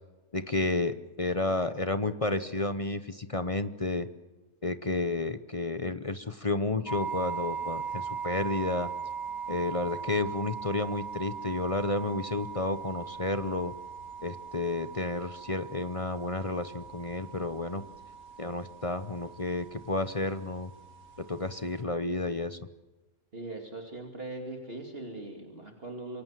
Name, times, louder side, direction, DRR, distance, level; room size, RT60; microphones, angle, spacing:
voice 1, 0.3-4.1 4.6-8.9 9.5-13.7 14.2-17.8 18.4-20.7 21.2-22.6, left 2 dB, 30° left, 12 dB, 0.8 m, -31 dB
sound 1, 6.9-21.8, right 6 dB, 85° right, 4.3 m, -40 dB
voice 2, 23.3-26.2, right 2 dB, 40° right, 2 dB, 2.8 m, -40 dB
27.0 x 23.5 x 7.5 m, 1.2 s
omnidirectional pair, 1.5 m